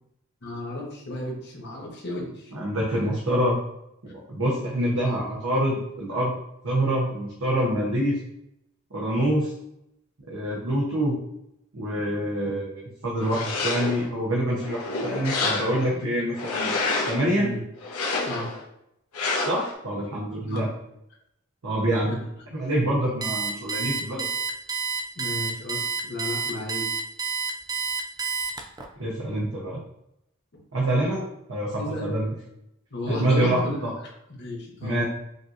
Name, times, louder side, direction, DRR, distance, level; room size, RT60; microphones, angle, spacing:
voice 1, 0.4-2.5 2.9-3.1 15.9-16.1 17.3-17.6 18.2-18.5 20.5-20.7 22.0-22.2 25.2-26.9 31.8-32.2 32.9-33.8 34.4-35.0, left 1 dB, 50° left, -2 dB, 1.1 m, -33 dB
voice 2, 2.5-3.6 4.1-6.3 6.6-8.2 8.9-9.5 10.3-11.2 11.7-16.7 17.1-17.5 19.5-20.7 21.6-22.2 22.5-24.3 29.0-29.8 30.7-32.3 33.1-33.9 34.8-35.0, right 1 dB, 70° right, -4 dB, 0.8 m, -26 dB
sound 1, 13.2-14.1 14.6-15.9 16.3-17.2 17.8-18.6 19.1-19.7, left 3 dB, 80° left, 0.9 m, -28 dB
Alarm, 23.2-28.9, right 4 dB, 20° right, 0.3 m, -29 dB
5.1 x 2.7 x 2.5 m, 0.80 s
head